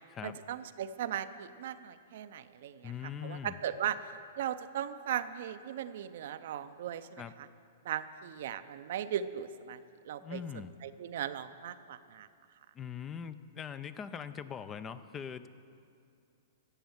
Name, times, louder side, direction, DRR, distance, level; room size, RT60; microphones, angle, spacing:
voice 1, 0.2-4.1 4.4-7.5 7.8-9.8 10.0-10.4 10.8-12.3, right 10 dB, 65° right, 11 dB, 0.6 m, -38 dB
voice 2, 2.8-3.6 7.2-7.3 10.2-10.8 12.7-15.5, left 7 dB, 20° left, 13 dB, 0.5 m, -41 dB
13.5 x 8.0 x 7.3 m, 2.5 s
hypercardioid pair, 125°, 0 cm